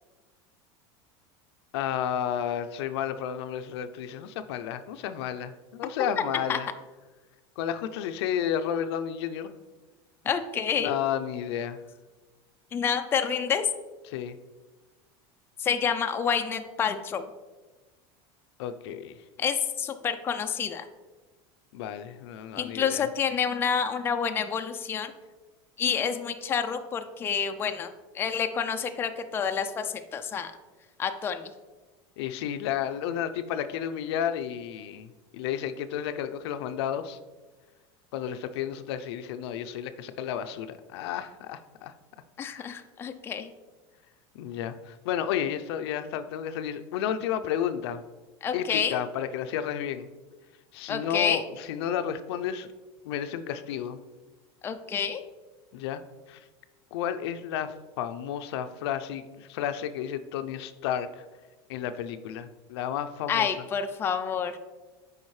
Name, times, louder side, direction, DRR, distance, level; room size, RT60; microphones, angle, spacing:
voice 1, 1.7-6.7 7.6-9.5 10.8-11.8 14.1-14.4 18.6-19.1 21.7-23.1 32.2-37.2 38.1-41.9 42.6-42.8 44.3-48.0 48.5-50.1 50.7-52.7 53.0-54.0 55.7-56.0 56.3-56.4 56.9-61.2 61.7-63.5, left 9 dB, 85° left, 10 dB, 0.5 m, -32 dB
voice 2, 10.2-10.9 12.7-13.7 15.6-17.2 19.4-20.9 22.6-25.1 25.8-30.5 31.0-31.5 42.4-43.5 48.4-49.0 50.9-51.4 54.6-55.2 63.3-64.6, left 7 dB, 15° left, 7 dB, 0.3 m, -28 dB
7.2 x 4.9 x 3.1 m, 1.2 s
supercardioid pair, 145°, 13 cm